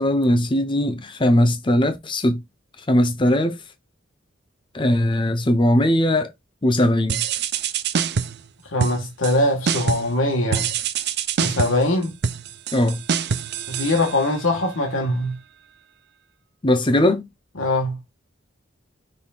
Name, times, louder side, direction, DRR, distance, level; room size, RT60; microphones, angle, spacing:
voice 1, 0.0-2.4 2.9-3.6 4.7-6.3 6.6-7.2 12.7-13.0 16.6-17.3, left 1 dB, 25° left, 0.7 m, -19 dB
sound 1, 7.1-8.5 8.8-9.4 9.7-10.2 10.5-14.5, right 6 dB, 55° right, 0.5 m, -25 dB
voice 2, 8.7-10.7 11.4-12.1 13.7-15.4 17.6-18.0, left 1 dB, 75° left, 1.4 m, -22 dB
5.5 x 4.2 x 2.3 m
head